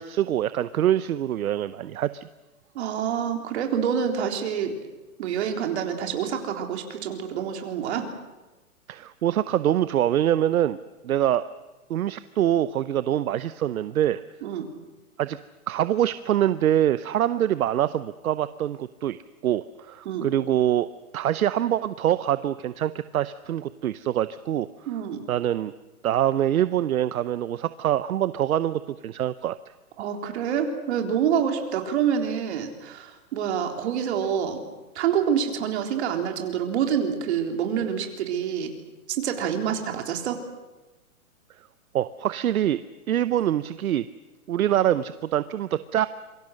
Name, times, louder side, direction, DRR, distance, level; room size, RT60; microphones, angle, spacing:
voice 1, 0.0-2.3 8.9-10.8 11.0-11.4 11.9-14.2 15.2-15.4 15.7-19.2 19.4-20.9 21.1-24.7 25.3-25.7 26.0-29.6 41.9-42.8 43.1-44.0 44.5-46.1, right 11 dB, 70° right, 14 dB, 0.9 m, -24 dB
voice 2, 2.7-4.8 5.2-8.1 14.4-14.7 20.1-20.3 24.9-25.2 30.0-34.6 35.0-38.8 39.1-40.4, right 8 dB, 50° right, 4 dB, 3.8 m, -27 dB
27.0 x 23.5 x 6.5 m, 1.1 s
hypercardioid pair, 150°, 43 cm